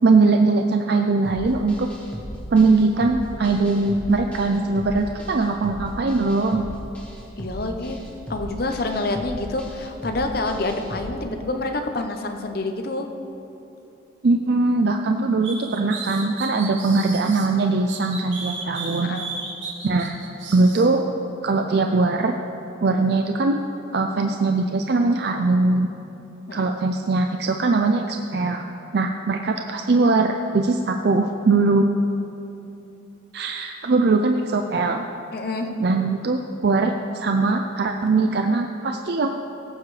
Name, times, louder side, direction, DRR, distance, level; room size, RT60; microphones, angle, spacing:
voice 1, 0.0-1.9 2.5-6.6 14.2-19.1 19.8-20.1 20.5-21.1 21.4-22.3 22.8-23.6 23.9-25.9 26.5-28.7 28.9-31.9 33.3-35.0 35.8-39.3, right 3 dB, 55° right, 4 dB, 0.4 m, -21 dB
sound 1, 1.2-11.1, equal, 5° left, 1.2 m, -37 dB
voice 2, 7.4-8.0 8.3-13.1 19.0-19.3 26.5-26.7 35.3-35.8, left 2 dB, 50° left, 5 dB, 0.8 m, -27 dB
sound 2, 15.4-17.5 17.9-20.9, right 4 dB, 75° right, 1.4 m, -34 dB
17.5 x 8.3 x 3.3 m, 2.9 s
head